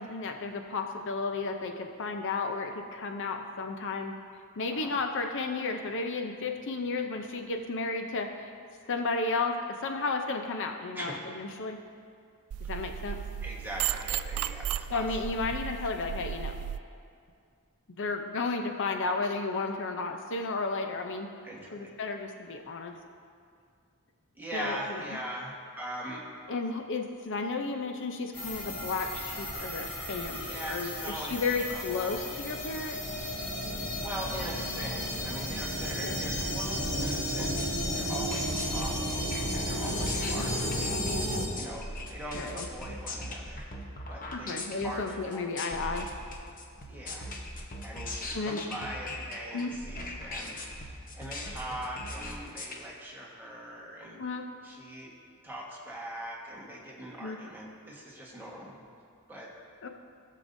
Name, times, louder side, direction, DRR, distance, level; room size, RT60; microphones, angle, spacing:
voice 1, 0.0-4.2 4.6-8.5 8.9-11.8 12.7-13.2 14.9-16.5 18.0-21.3 21.7-22.9 24.5-25.0 26.5-33.0 36.0-36.2 40.2-40.4 42.3-42.7 44.4-46.1 48.3-48.8 49.5-49.7 54.2-54.5 57.2-57.4 59.8-59.9, left 3 dB, 55° left, 5 dB, 0.6 m, -33 dB
voice 2, 10.9-11.3 13.4-15.1 15.3-15.4 21.4-22.0 24.3-26.2 29.9-32.4 33.9-37.7 37.9-41.0 41.5-43.6 44.1-46.0 46.9-47.3 47.8-54.2 54.6-55.1 55.4-58.8 59.3-59.5, right 1 dB, 10° right, -4 dB, 1.4 m, -41 dB
sound 1, 12.5-16.8, right 10 dB, 70° right, 0.3 m, -34 dB
sound 2, 28.3-41.5, equal, 75° left, 2.6 m, -33 dB
sound 3, 36.8-52.8, left 1 dB, 40° left, 0.9 m, -40 dB
17.5 x 6.6 x 2.6 m, 2.2 s
head